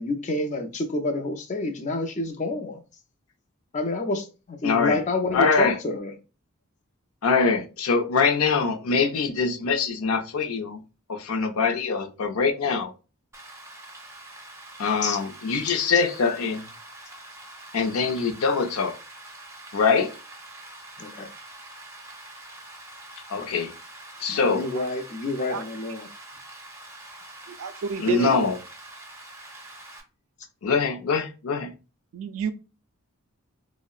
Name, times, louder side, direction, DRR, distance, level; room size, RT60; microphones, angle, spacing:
voice 1, 0.0-2.8 3.7-6.1 15.0-15.2 15.6-15.8 21.0-21.3 23.4-23.6 24.3-26.1, left 2 dB, 35° left, 0.4 m, -28 dB
voice 2, 4.6-5.0 5.3-5.7 7.2-10.8 11.1-12.9 14.8-16.6 17.7-18.9 19.7-20.1 23.3-23.7 24.2-24.7 28.0-28.5 30.6-31.7, left 5 dB, 90° left, 0.5 m, -23 dB
Rain, 13.3-30.0, right 2 dB, 15° right, 0.5 m, -45 dB
voice 3, 27.5-28.5 32.1-32.5, right 5 dB, 75° right, 0.4 m, -29 dB
3.5 x 2.0 x 2.3 m
head